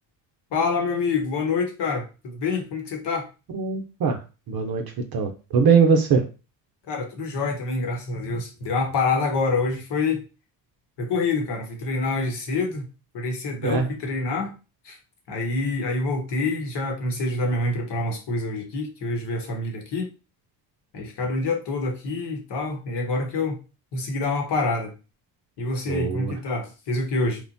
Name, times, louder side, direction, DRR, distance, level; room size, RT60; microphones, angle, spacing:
voice 1, 0.5-3.3 6.9-10.2 11.0-12.8 13.1-14.5 14.8-15.0 15.3-20.1 20.9-23.6 23.9-24.9 25.6-27.4, left 3 dB, 60° left, 1.1 m, -26 dB
voice 2, 3.5-4.2 4.5-4.8 5.1-6.2 13.6-13.9 25.9-26.3, right 5 dB, 50° right, 0.6 m, -21 dB
3.1 x 2.1 x 2.6 m
supercardioid pair, 80°, 48 cm